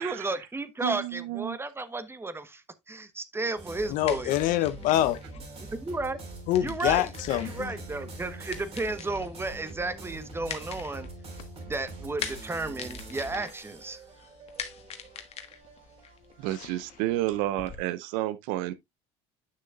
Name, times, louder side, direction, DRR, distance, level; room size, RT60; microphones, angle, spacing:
voice 1, 0.0-4.4 5.6-6.2 6.6-7.1 7.4-11.1 11.7-14.0, right 2 dB, 15° right, 1.1 m, -33 dB
voice 2, 0.8-1.6 16.4-18.7, right 15 dB, 70° right, 0.7 m, -30 dB
sound 1, 3.6-17.4, right 2 dB, 40° right, 4.2 m, -44 dB
voice 3, 3.9-5.2 6.5-7.7 16.5-16.7, left 13 dB, 60° left, 0.8 m, -26 dB
sound 2, 4.1-17.8, left 7 dB, 45° left, 1.4 m, -44 dB
sound 3, 7.3-10.8 11.2-11.3 11.5-11.6, right 2 dB, 85° right, 3.3 m, -51 dB
9.6 x 6.3 x 2.4 m
hypercardioid pair, 75°, 15 cm